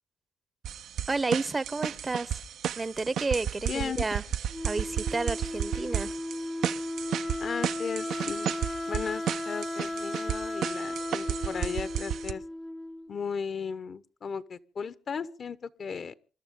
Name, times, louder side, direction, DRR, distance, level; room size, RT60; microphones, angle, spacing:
sound 1, 0.6-12.3, right 10 dB, 70° right, 0.7 m, -33 dB
voice 1, 1.1-2.4 2.8-4.2 4.6-6.1, right 3 dB, 25° right, 0.8 m, -31 dB
voice 2, 3.7-4.0 7.4-8.5 8.9-12.4 13.1-16.1, left 6 dB, 50° left, 1.0 m, -36 dB
Wind instrument woodwind instrument, 4.5-13.2, left 1 dB, 10° left, 0.7 m, -35 dB
27.5 x 12.5 x 3.7 m
cardioid pair, 90°, 0 cm